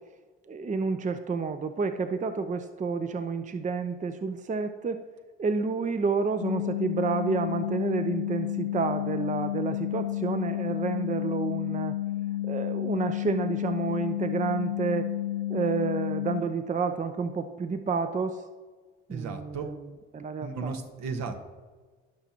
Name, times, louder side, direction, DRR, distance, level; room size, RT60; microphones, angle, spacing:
voice 1, 0.4-5.0 5.4-12.0 12.4-15.1 15.5-18.4 19.1-19.8 20.1-20.7, right 4 dB, 25° right, 9 dB, 0.6 m, -30 dB
sound 1, 6.4-16.4, left 14 dB, 75° left, 0.9 m, -31 dB
voice 2, 19.1-19.7 20.4-21.4, right 5 dB, 65° right, 5 dB, 1.3 m, -34 dB
16.5 x 6.0 x 2.9 m, 1.4 s
hypercardioid pair, 60°, 30 cm